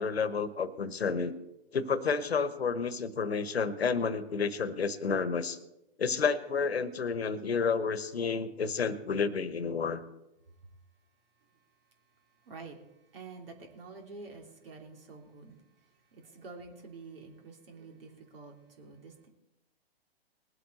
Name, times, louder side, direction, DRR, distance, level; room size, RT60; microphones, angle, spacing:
voice 1, 0.0-1.3 1.7-5.6 6.0-10.0, left 5 dB, 85° left, 14 dB, 1.2 m, -30 dB
voice 2, 12.4-12.8 13.1-15.6 16.1-19.3, right 4 dB, 65° right, 3 dB, 3.0 m, -48 dB
20.5 x 8.2 x 4.2 m, 0.89 s
hypercardioid pair, 130°, 31 cm